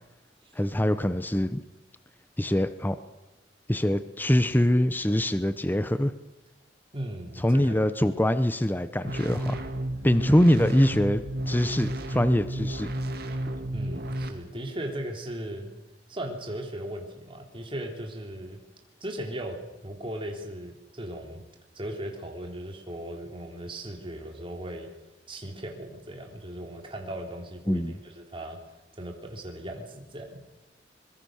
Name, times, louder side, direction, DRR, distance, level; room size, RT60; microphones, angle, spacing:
voice 1, 0.6-1.6 2.4-3.0 3.7-6.1 7.4-9.6 10.0-12.9 27.7-28.0, left 1 dB, 10° left, 12 dB, 0.9 m, -24 dB
voice 2, 6.9-7.7 13.7-15.7 16.1-18.6 19.0-19.6 19.8-21.4 21.7-24.9 25.3-28.6 28.9-30.4, right 1 dB, 30° right, 2 dB, 3.6 m, -37 dB
sound 1, 9.0-14.3, right 1 dB, 60° right, 2.4 m, -32 dB
24.5 x 22.5 x 6.5 m, 1.1 s
head